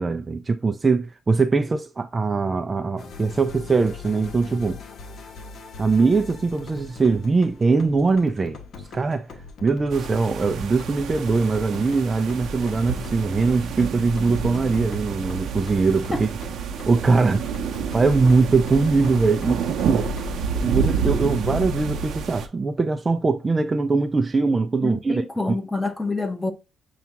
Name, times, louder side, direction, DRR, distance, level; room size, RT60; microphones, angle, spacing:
voice 1, 0.0-4.8 5.8-8.6 8.9-9.3 9.6-16.3 16.9-17.5 17.9-20.1 20.5-25.2, right 4 dB, 30° right, 0.4 m, -21 dB
sound 1, 3.0-20.4, left 4 dB, 60° left, 1.0 m, -42 dB
sound 2, 9.9-22.5, right 6 dB, 70° right, 0.7 m, -29 dB
voice 2, 24.8-26.5, left 2 dB, 10° left, 1.0 m, -27 dB
6.8 x 2.4 x 2.8 m
cardioid pair, 90°, 0 cm